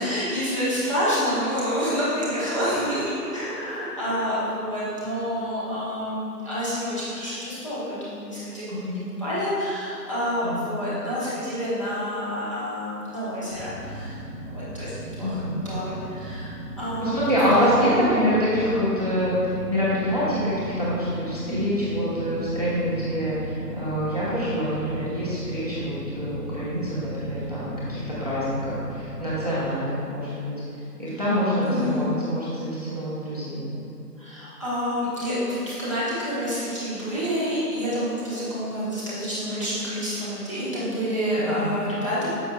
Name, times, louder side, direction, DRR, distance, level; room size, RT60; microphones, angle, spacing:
voice 1, 0.0-15.4 15.6-16.5 16.8-17.2 17.5-18.0 21.4-21.7 31.6-32.1 34.2-42.3, equal, 20° left, -12 dB, 1.2 m, -28 dB
voice 2, 10.4-10.7 15.2-15.6 17.0-19.4 19.7-23.3 23.7-30.5 31.0-33.7 41.5-41.7, equal, 25° right, -10 dB, 1.0 m, -25 dB
sound 1, 13.5-29.5, right 1 dB, 60° left, 1.4 m, -37 dB
9.5 x 6.9 x 2.3 m, 2.9 s
figure-of-eight pair, 165°, 49 cm